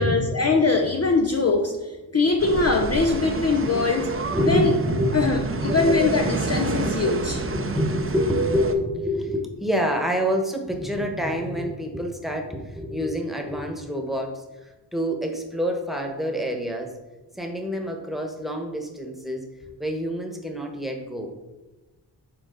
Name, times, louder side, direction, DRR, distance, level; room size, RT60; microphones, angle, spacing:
voice 1, 0.0-4.1 4.4-4.7 5.1-7.4, left 3 dB, 35° left, 3 dB, 0.7 m, -22 dB
sound 1, 2.4-8.7, right 3 dB, 30° right, 0.7 m, -28 dB
voice 2, 4.3-5.3 5.6-6.4 6.8-7.0 7.5-16.9 17.3-19.4 19.8-21.3, equal, ahead, 3 dB, 1.3 m, -27 dB
6.9 x 4.2 x 4.0 m, 1.1 s
cardioid pair, 55°, 44 cm